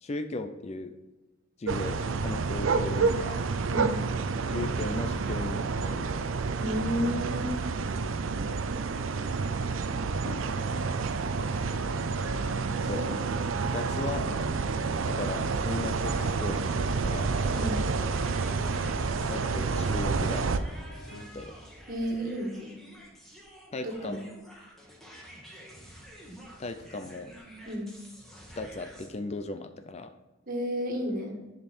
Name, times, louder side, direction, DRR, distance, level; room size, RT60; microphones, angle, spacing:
voice 1, 0.0-0.9 1.6-3.4 4.5-6.1 10.2-10.5 12.8-13.3 13.7-14.3 15.1-16.1 16.4-16.8 17.0-17.3 19.3-20.4 21.3-21.5 23.7-24.2 26.6-27.3 28.6-30.1, left 2 dB, 35° left, 9 dB, 0.5 m, -36 dB
sound 1, 1.7-20.6, right 4 dB, 85° right, 0.5 m, -29 dB
voice 2, 3.7-4.0 6.6-7.5 17.5-17.8 21.9-22.8 23.8-24.3 27.6-27.9 30.5-31.4, equal, 45° right, 1 dB, 1.7 m, -32 dB
sound 2, 11.0-21.3, left 1 dB, 65° left, 1.0 m, -46 dB
sound 3, 16.0-29.1, equal, ahead, 1.7 m, -49 dB
10.0 x 5.4 x 4.4 m, 1.1 s
head